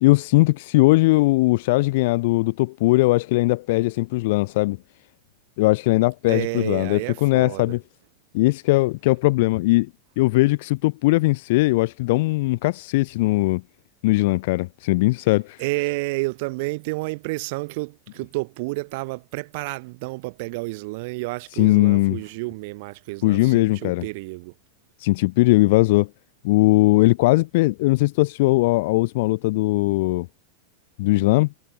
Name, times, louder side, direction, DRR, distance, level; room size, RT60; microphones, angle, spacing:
voice 1, 0.0-4.8 5.6-7.8 8.3-9.9 10.2-13.6 14.0-15.6 21.5-22.2 23.2-24.0 25.0-26.1 26.4-30.3 31.0-31.5, left 21 dB, 50° left, 0.6 m, -19 dB
voice 2, 6.3-7.7 15.6-24.5, right 25 dB, 50° right, 2.0 m, -30 dB
figure-of-eight pair, 90°, 0 cm